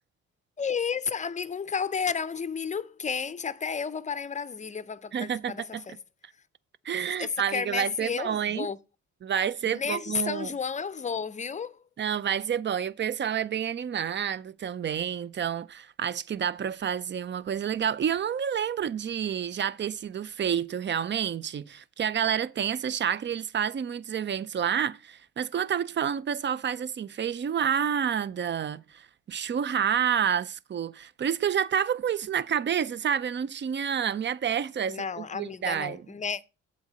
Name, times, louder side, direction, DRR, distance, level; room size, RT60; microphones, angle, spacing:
voice 1, 0.6-5.9 7.2-8.8 9.6-11.8 34.9-36.4, left 6 dB, 25° left, 0.6 m, -32 dB
voice 2, 5.1-5.8 6.8-8.7 9.2-10.5 12.0-36.0, right 8 dB, 40° right, 0.5 m, -29 dB
7.9 x 4.1 x 6.7 m
cardioid pair, 90°, 30 cm